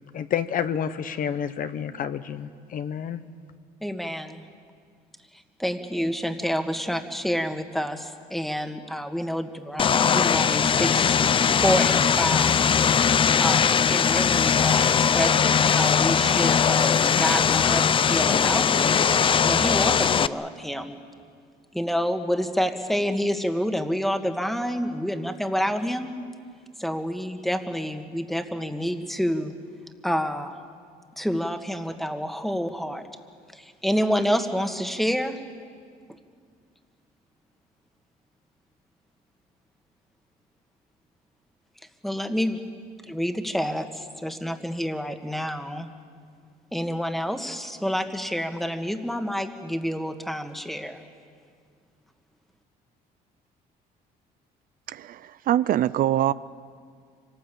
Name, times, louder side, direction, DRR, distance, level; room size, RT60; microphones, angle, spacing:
voice 1, 0.1-3.2, left 8 dB, 55° left, 11 dB, 1.1 m, -29 dB
voice 2, 3.8-4.4 5.3-11.2 11.6-13.1 13.4-19.0 19.4-21.0 21.7-26.2 26.8-29.5 30.0-30.5 31.2-33.0 33.5-35.4 42.0-42.6 43.1-45.9 46.7-51.0, equal, ahead, 6 dB, 1.7 m, -28 dB
Vehicle, 9.8-20.3, left 7 dB, 30° left, 0.5 m, -20 dB
voice 3, 54.9-56.3, right 12 dB, 55° right, 16 dB, 0.5 m, -23 dB
25.5 x 18.5 x 8.5 m, 2.1 s
cardioid pair, 110°, 17 cm